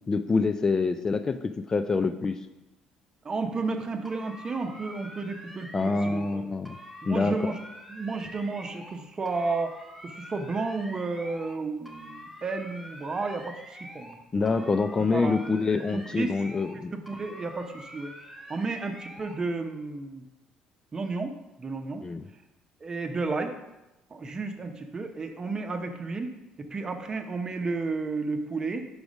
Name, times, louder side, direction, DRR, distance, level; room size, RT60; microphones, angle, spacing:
voice 1, 0.1-2.4 5.7-6.8 7.1-7.6 14.3-16.9 22.0-22.3, left 4 dB, 30° left, 9 dB, 0.4 m, -26 dB
voice 2, 3.2-6.5 7.0-7.6 7.9-9.8 10.0-14.2 15.0-15.4 16.2-16.3 16.9-18.2 18.5-20.3 20.9-22.0 22.8-23.6 24.1-28.9, right 3 dB, 30° right, 6 dB, 0.7 m, -32 dB
sound 1, 4.0-6.4 6.6-9.0 9.2-11.6 11.8-14.2 14.4-16.8 17.1-19.4, equal, ahead, 1.3 m, -46 dB
4.9 x 4.8 x 5.2 m, 0.98 s
supercardioid pair, 85°, 2 cm